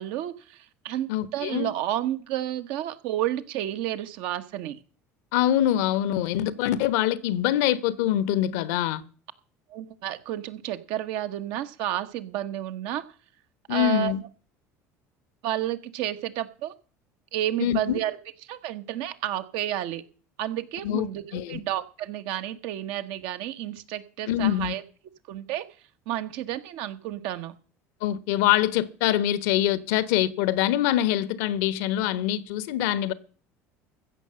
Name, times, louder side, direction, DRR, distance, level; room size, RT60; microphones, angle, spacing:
voice 1, 0.0-4.8 9.7-13.1 13.7-14.1 15.4-16.7 17.3-20.0 20.4-24.8 25.3-25.7 26.1-27.5, right 12 dB, 70° right, 1.3 m, -31 dB
voice 2, 1.1-1.7 5.3-9.0 13.7-14.2 17.6-18.0 20.8-21.6 24.3-24.7 28.0-33.1, left 12 dB, 75° left, 1.1 m, -24 dB
15.0 x 6.4 x 7.6 m
hypercardioid pair, 75°, 8 cm